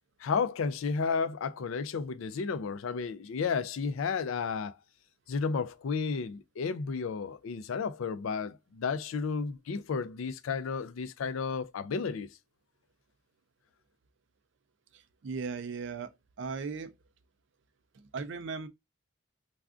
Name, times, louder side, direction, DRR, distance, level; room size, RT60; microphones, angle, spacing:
voice 1, 0.2-4.7 5.3-12.3, left 5 dB, 85° left, 0.4 m, -32 dB
voice 2, 15.2-16.1 16.4-16.9 18.1-18.7, right 5 dB, 65° right, 0.4 m, -36 dB
3.4 x 2.4 x 2.4 m
head